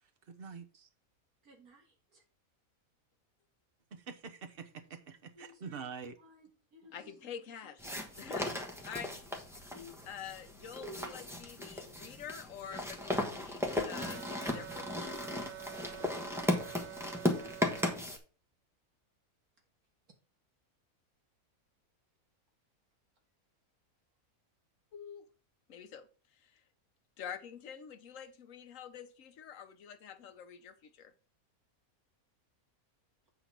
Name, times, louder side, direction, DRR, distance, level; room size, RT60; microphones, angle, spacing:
voice 1, 0.3-0.9 3.9-6.2, right 5 dB, 45° right, 1.0 m, -46 dB
voice 2, 1.4-2.2 5.3-5.6 6.2-8.0 9.7-9.9 10.7-11.3 13.0-13.1, right 1 dB, 85° right, 2.4 m, -54 dB
voice 3, 6.9-7.9 8.2-9.1 9.5-9.6 10.1-15.1 24.9-25.2 25.7-26.1 27.2-31.1, left 8 dB, 65° left, 1.0 m, -47 dB
sound 1, 7.8-18.2, left 1 dB, ahead, 1.0 m, -36 dB
sound 2, 13.9-18.0, right 12 dB, 65° right, 0.8 m, -47 dB
8.2 x 3.9 x 5.9 m
omnidirectional pair, 1.5 m